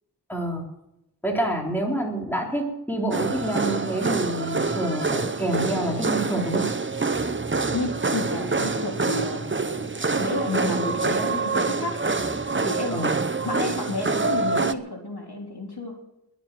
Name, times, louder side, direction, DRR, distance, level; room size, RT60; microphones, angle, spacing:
voice 1, 0.3-0.7 1.2-6.7 12.9-13.2, right 1 dB, 5° left, -1 dB, 3.7 m, -27 dB
sound 1, 3.1-14.7, right 3 dB, 30° right, 0.8 m, -26 dB
sound 2, 7.1-12.8, right 2 dB, 10° right, 1.9 m, -42 dB
voice 2, 7.7-9.6 10.2-12.0 12.3-13.0 13.4-15.9, left 2 dB, 75° left, 0 dB, 3.4 m, -31 dB
21.0 x 7.5 x 7.6 m, 0.85 s
wide cardioid pair, 60°, 40 cm